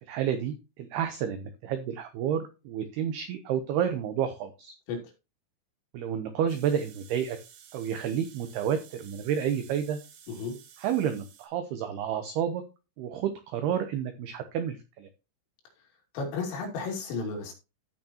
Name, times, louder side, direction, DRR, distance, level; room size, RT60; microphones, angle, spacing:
voice 1, 0.1-4.7 5.9-7.4 7.7-10.0 10.8-12.6 13.0-15.1, right 9 dB, 85° right, 2.2 m, -30 dB
sound 1, 6.5-11.5, right 8 dB, 65° right, 2.9 m, -53 dB
voice 2, 16.1-17.5, left 4 dB, 80° left, 5.2 m, -33 dB
15.0 x 6.1 x 2.9 m
omnidirectional pair, 5.8 m